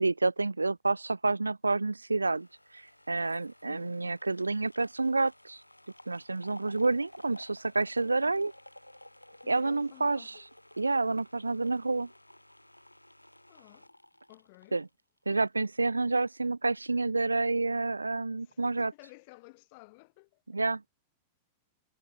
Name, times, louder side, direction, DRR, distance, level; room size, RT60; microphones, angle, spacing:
voice 1, 0.0-2.5 2.7-5.6 6.1-8.5 9.5-10.3 10.8-12.1 14.7-14.9 15.3-18.9 20.5-20.8, right 3 dB, 85° right, 0.6 m, -29 dB
sound 1, 2.2-15.5 15.8-15.9, left 1 dB, 90° left, 3.5 m, -54 dB
voice 2, 3.6-4.0 9.4-10.4 13.5-13.9 14.3-14.8 18.4-20.6, left 28 dB, 50° left, 4.3 m, -54 dB
figure-of-eight pair, 90°, 0 cm